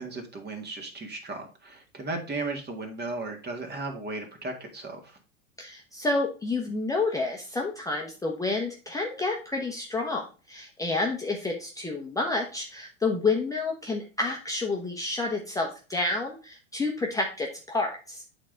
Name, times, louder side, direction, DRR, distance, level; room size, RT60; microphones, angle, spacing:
voice 1, 0.0-5.2, right 3 dB, 25° right, 4 dB, 1.9 m, -35 dB
voice 2, 5.6-18.2, left 3 dB, 10° left, 0 dB, 0.9 m, -29 dB
8.5 x 3.8 x 3.8 m, 0.35 s
hypercardioid pair, 95°, 40 cm